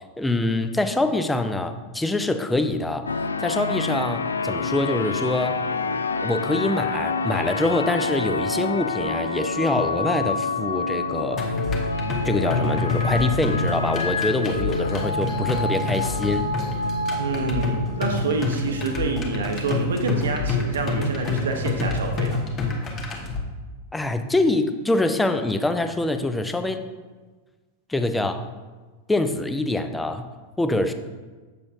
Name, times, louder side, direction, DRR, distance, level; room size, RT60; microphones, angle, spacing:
voice 1, 0.2-3.1 3.4-5.6 6.2-11.4 12.2-16.5 23.9-26.8 27.9-28.4 29.1-30.3 30.6-30.9, left 2 dB, 5° left, 8 dB, 0.4 m, -24 dB
sound 1, 3.1-22.5, left 3 dB, 75° left, 0.3 m, -28 dB
sound 2, 11.4-23.4, left 3 dB, 25° left, 1.1 m, -28 dB
voice 2, 17.2-22.4, right 4 dB, 65° right, 5 dB, 0.7 m, -27 dB
8.1 x 6.8 x 2.5 m, 1.3 s
figure-of-eight pair, 90°, 0 cm